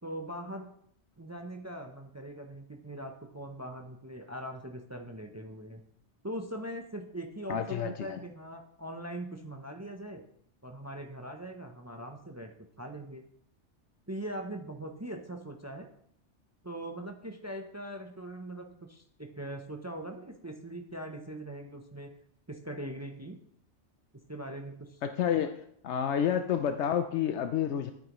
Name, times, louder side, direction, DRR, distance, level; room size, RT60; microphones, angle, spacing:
voice 1, 0.0-0.7 1.2-5.8 6.2-10.2 10.6-13.2 14.1-15.9 16.6-22.1 22.5-23.4 24.3-25.0, right 1 dB, 20° right, 4 dB, 0.5 m, -41 dB
voice 2, 7.5-8.2 25.0-25.6 25.8-27.9, left 9 dB, 80° left, 8 dB, 0.9 m, -29 dB
9.6 x 8.8 x 3.1 m, 0.69 s
omnidirectional pair, 1.2 m